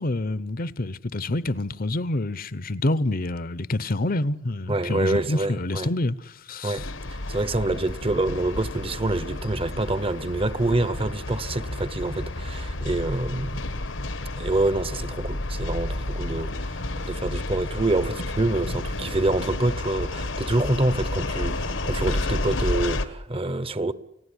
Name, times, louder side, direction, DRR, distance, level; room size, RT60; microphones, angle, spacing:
voice 1, 0.0-6.8, left 2 dB, 50° left, 0.9 m, -27 dB
voice 2, 4.7-5.9 6.6-6.8 7.1-13.7 14.3-23.9, right 2 dB, 30° right, 0.9 m, -26 dB
sound 1, 6.8-23.1, left 2 dB, 80° left, 1.6 m, -31 dB
30.0 x 17.0 x 9.9 m
head